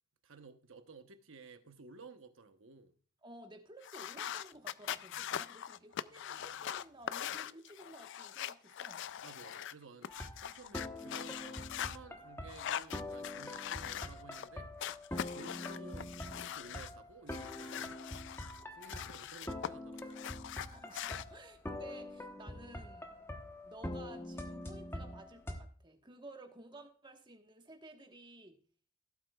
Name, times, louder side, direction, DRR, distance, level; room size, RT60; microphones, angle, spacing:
voice 1, 0.2-2.9 9.2-14.7 15.3-18.0 18.7-20.2, right 3 dB, 60° right, 1.0 m, -55 dB
voice 2, 3.2-9.1 20.7-23.2 23.6-28.6, right 1 dB, 20° right, 1.3 m, -54 dB
sound 1, 3.8-12.0 12.5-14.5 14.8-16.9 17.3-19.7 20.0-21.2, left 10 dB, 55° left, 0.3 m, -42 dB
sound 2, 10.1-25.6, left 1 dB, 10° left, 1.0 m, -45 dB
17.0 x 7.8 x 2.3 m
head